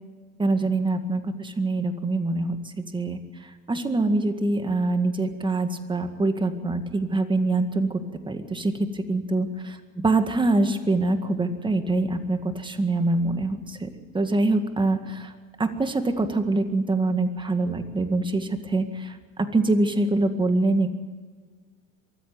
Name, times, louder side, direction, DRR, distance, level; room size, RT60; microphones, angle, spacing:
voice 1, 0.4-8.0 8.3-9.5 10.0-13.9 14.1-15.3 15.6-20.9, right 2 dB, 10° right, 8 dB, 1.9 m, -24 dB
23.0 x 14.0 x 9.4 m, 1.5 s
supercardioid pair, 120°, 38 cm